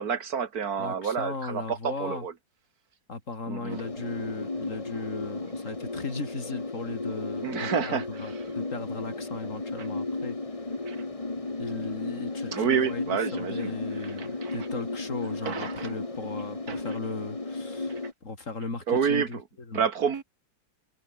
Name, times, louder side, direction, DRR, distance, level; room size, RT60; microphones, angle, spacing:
voice 1, 0.0-2.3 3.5-3.8 7.4-8.0 10.9-11.0 12.5-13.7 14.0-14.5 15.5-15.9 16.7-16.8 18.9-19.3 19.7-20.2, right 6 dB, 50° right, 2.0 m, -28 dB
voice 2, 0.8-2.3 3.1-10.4 11.6-19.9, left 3 dB, 35° left, 4.0 m, -37 dB
sound 1, 3.7-18.1, left 2 dB, 20° left, 1.7 m, -34 dB
omnidirectional pair, 2.2 m